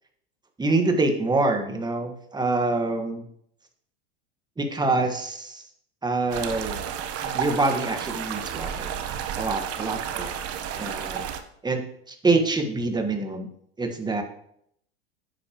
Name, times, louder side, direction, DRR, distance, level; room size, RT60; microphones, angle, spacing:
voice 1, 0.6-3.3 4.6-5.6 6.0-6.8 7.2-8.9 9.4-10.3 10.8-11.3 11.6-13.5 13.8-14.2, right 3 dB, 10° right, 4 dB, 1.5 m, -26 dB
sound 1, 6.3-11.4, right 8 dB, 45° right, 1.1 m, -32 dB
9.8 x 8.7 x 3.0 m, 0.69 s
hypercardioid pair, 105°, 34 cm